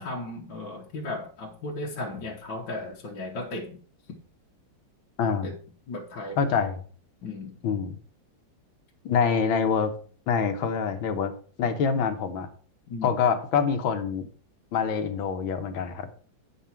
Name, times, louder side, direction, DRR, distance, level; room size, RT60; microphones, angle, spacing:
voice 1, 0.0-3.8 5.4-5.5 5.9-6.4 7.2-7.6 12.9-13.1, left 2 dB, 70° left, 2.0 m, -35 dB
voice 2, 5.2-5.5 6.4-6.8 7.6-8.0 9.1-9.9 10.3-11.3 11.6-12.5 13.0-14.3 14.7-16.1, left 6 dB, 90° left, 1.8 m, -25 dB
9.4 x 5.5 x 4.4 m
omnidirectional pair, 2.1 m